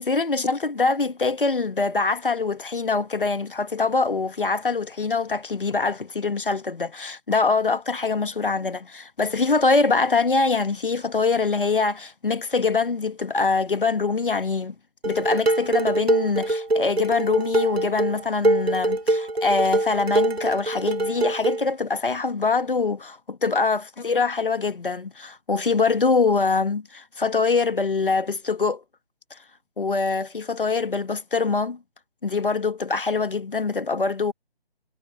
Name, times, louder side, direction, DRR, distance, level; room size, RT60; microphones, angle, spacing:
voice 1, 0.0-14.8 15.0-28.8 29.3-29.4 29.8-31.8 32.2-34.3, left 4 dB, 60° left, 1.7 m, -24 dB
Dishes pots and pans, 15.0-21.6, right 2 dB, 75° right, 2.3 m, -24 dB
figure-of-eight pair, 155°, 31 cm